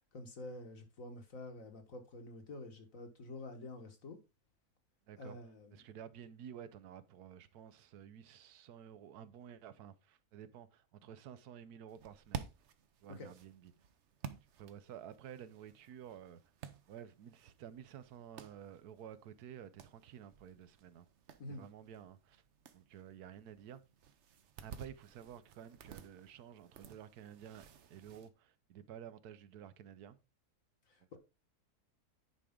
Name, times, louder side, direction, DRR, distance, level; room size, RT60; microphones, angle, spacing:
voice 1, 0.1-4.2 5.2-5.8 13.2-13.3 21.4-21.6 30.9-31.2, left 2 dB, 60° left, 1.8 m, -48 dB
voice 2, 5.1-5.4 5.7-12.4 13.0-13.7 14.3-16.4 16.9-21.1 21.5-22.4 22.7-23.8 24.6-30.2, right 9 dB, 85° right, 1.2 m, -52 dB
sound 1, 11.9-28.3, right 7 dB, 55° right, 0.9 m, -53 dB
10.0 x 5.0 x 3.7 m
omnidirectional pair, 1.6 m